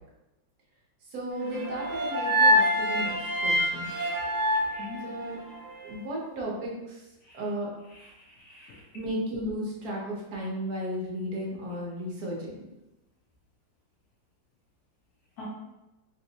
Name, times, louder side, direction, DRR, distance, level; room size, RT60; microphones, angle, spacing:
voice 1, 1.1-3.9 5.0-5.4 5.8-7.1 7.3-7.7 8.9-12.6, equal, 60° right, -4 dB, 1.1 m, -34 dB
sound 1, 1.5-5.7, equal, 90° right, 1.5 m, -26 dB
voice 2, 4.7-5.0 7.2-7.4 7.9-8.8 15.4-15.5, left 3 dB, 80° left, -3 dB, 0.8 m, -44 dB
3.4 x 2.5 x 2.8 m, 0.96 s
omnidirectional pair, 2.2 m